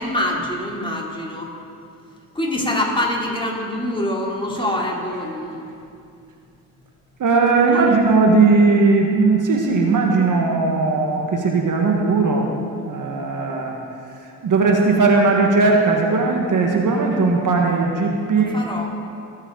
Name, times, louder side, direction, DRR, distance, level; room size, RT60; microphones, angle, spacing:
voice 1, 0.0-1.5 2.3-5.7 7.5-7.9 18.3-18.9, left 1 dB, 15° left, -3 dB, 3.3 m, -25 dB
voice 2, 7.2-12.5 12.8-13.8 14.4-18.6, right 3 dB, 55° right, 1 dB, 1.7 m, -18 dB
20.5 x 8.2 x 4.0 m, 2.4 s
supercardioid pair, 60°, 37 cm